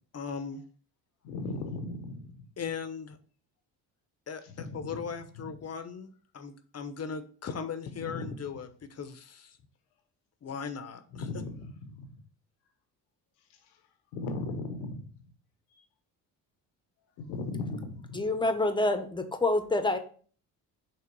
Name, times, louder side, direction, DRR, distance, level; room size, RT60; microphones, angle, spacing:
voice 1, 0.1-0.6 2.6-3.2 4.3-4.4 4.7-9.5 10.4-11.3, left 6 dB, 35° left, 0.9 m, -38 dB
voice 2, 1.2-2.5 4.4-5.1 7.9-8.4 11.1-12.2 13.7-13.8 14.1-15.2 15.8-15.9 17.2-18.2, left 2 dB, 85° left, 1.2 m, -38 dB
voice 3, 18.1-20.0, left 2 dB, 10° left, 1.0 m, -27 dB
6.0 x 3.4 x 4.7 m
supercardioid pair, 70°, 41 cm